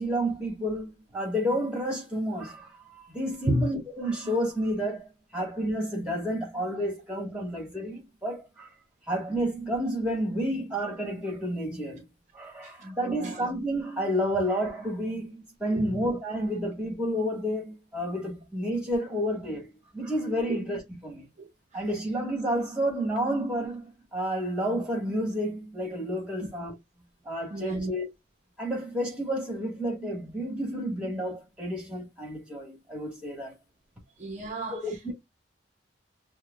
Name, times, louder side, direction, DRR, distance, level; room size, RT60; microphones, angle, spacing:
voice 1, 0.0-8.7 9.1-12.0 12.3-19.7 19.9-21.2 21.7-26.7 27.2-28.0 28.6-33.5 34.7-35.1, equal, 5° right, 1.7 m, -30 dB
voice 2, 12.6-13.4 15.7-16.0 20.5-20.6 21.4-21.5 27.5-27.9 34.2-35.1, right 1 dB, 40° right, 0.6 m, -32 dB
6.2 x 2.2 x 2.4 m
head